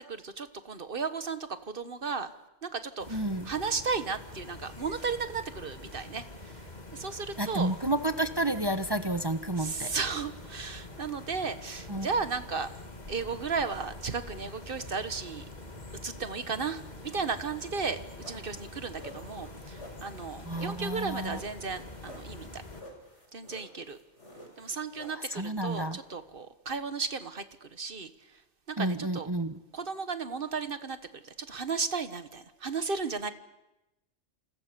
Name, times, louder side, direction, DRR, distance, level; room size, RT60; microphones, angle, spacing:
voice 1, 0.0-2.3 2.6-6.6 6.9-7.7 9.6-12.7 13.1-15.4 16.0-18.0 18.2-22.6 23.3-24.0 24.6-28.1 28.7-29.3 29.7-33.3, right 5 dB, 50° right, 10 dB, 1.6 m, -34 dB
sound 1, 3.0-22.8, left 2 dB, 40° left, 2.3 m, -45 dB
voice 2, 3.1-3.5 7.4-9.9 11.9-12.1 20.5-21.4 25.1-26.0 28.8-29.6, right 1 dB, 20° right, 9 dB, 1.1 m, -30 dB
sound 2, 18.2-26.4, left 1 dB, 80° left, 6.2 m, -50 dB
29.0 x 28.0 x 7.0 m, 0.95 s
omnidirectional pair, 1.2 m